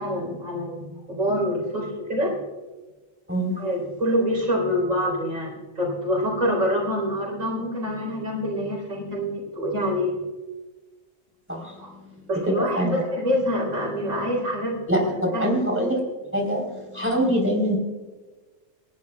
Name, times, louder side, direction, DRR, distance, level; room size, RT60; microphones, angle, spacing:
voice 1, 0.0-2.4 3.6-10.2 11.8-11.9 12.3-15.6, equal, 85° right, 0 dB, 4.4 m, -26 dB
voice 2, 12.5-13.0 14.9-16.0 16.3-17.8, equal, 10° right, 0 dB, 3.9 m, -24 dB
28.0 x 11.0 x 2.4 m, 1.3 s
omnidirectional pair, 1.3 m